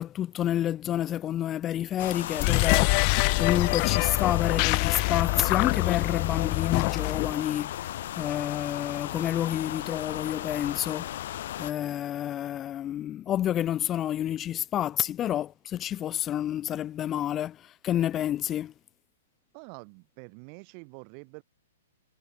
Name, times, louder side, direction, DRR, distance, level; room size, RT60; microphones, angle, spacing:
voice 1, 0.0-18.7, left 11 dB, 25° left, 1.3 m, -29 dB
sound 1, 2.0-11.7, left 13 dB, 60° left, 0.5 m, -36 dB
sound 2, 2.3-7.4, left 40 dB or more, 40° left, 0.9 m, -25 dB
voice 2, 19.5-21.4, right 40 dB or more, 40° right, 7.1 m, -46 dB
hypercardioid pair, 130°, 0 cm